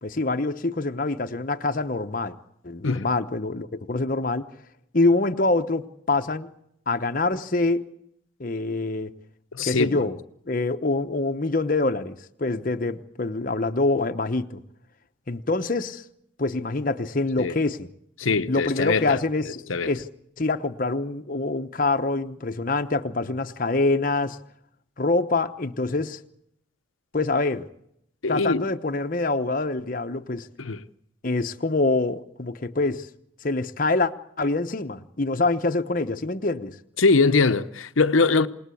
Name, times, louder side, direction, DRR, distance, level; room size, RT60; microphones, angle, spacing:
voice 1, 0.0-2.3 2.6-4.5 4.9-6.5 6.9-7.9 8.4-9.1 9.6-10.2 10.5-14.6 15.3-16.0 16.4-17.9 18.5-20.1 20.4-24.4 25.0-26.2 27.1-27.7 28.3-30.5 31.2-33.1 33.4-36.8, left 3 dB, 45° left, 1.0 m, -25 dB
voice 2, 9.5-10.0 17.4-17.6 18.2-19.2 19.7-19.9 28.2-28.7 30.6-30.8 37.0-38.5, left 4 dB, 85° left, 0.9 m, -22 dB
28.0 x 19.5 x 8.4 m
head